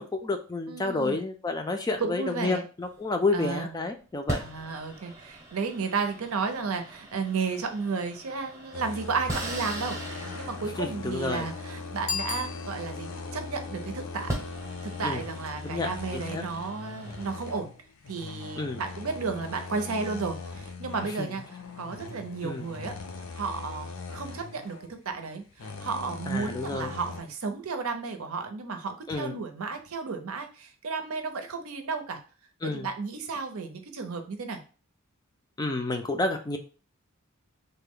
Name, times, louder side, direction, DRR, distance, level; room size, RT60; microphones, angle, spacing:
voice 1, 0.0-4.4 10.8-11.5 15.0-15.2 15.6-16.4 18.6-18.8 21.2-21.3 22.4-22.7 26.3-26.9 29.1-29.4 32.6-32.9 35.6-36.6, left 3 dB, 20° left, 5 dB, 0.3 m, -30 dB
voice 2, 0.7-1.2 2.0-2.6 3.3-3.7 4.4-10.0 10.3-14.3 14.8-17.7 18.1-21.4 21.8-22.9 23.4-32.2 32.6-34.6, right 4 dB, 85° right, 6 dB, 0.6 m, -33 dB
sound 1, 2.8-3.6 4.3-13.4 13.9-14.0 14.3-17.3, right 1 dB, 15° right, 0.7 m, -40 dB
sound 2, 8.7-27.2, left 4 dB, 65° left, 0.6 m, -40 dB
Bicycle bell, 12.0-13.2, left 5 dB, 90° left, 1.0 m, -35 dB
3.3 x 2.1 x 3.6 m, 0.35 s
head